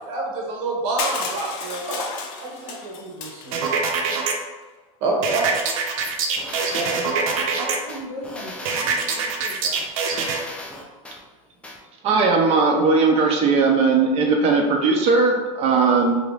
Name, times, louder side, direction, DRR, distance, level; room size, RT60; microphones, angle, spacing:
voice 1, 0.1-2.0 2.4-3.7 5.0-5.6 6.7-6.9 7.2-7.4, right 3 dB, 65° right, -1 dB, 1.0 m, -27 dB
Crushing, 1.0-3.9, left 5 dB, 65° left, 0.6 m, -32 dB
sound 1, 3.5-4.3 5.2-7.8 8.7-10.4, right 5 dB, 90° right, 0.5 m, -24 dB
sound 2, 6.0-7.4 7.9-9.3 9.8-11.2 11.6-11.8, left 1 dB, 5° left, 0.4 m, -37 dB
voice 2, 6.7-9.8, left 1 dB, 90° left, -1 dB, 1.1 m, -38 dB
voice 3, 12.0-16.2, right 4 dB, 40° right, 1 dB, 0.6 m, -18 dB
2.9 x 2.5 x 3.2 m, 1.2 s
supercardioid pair, 135°, 17 cm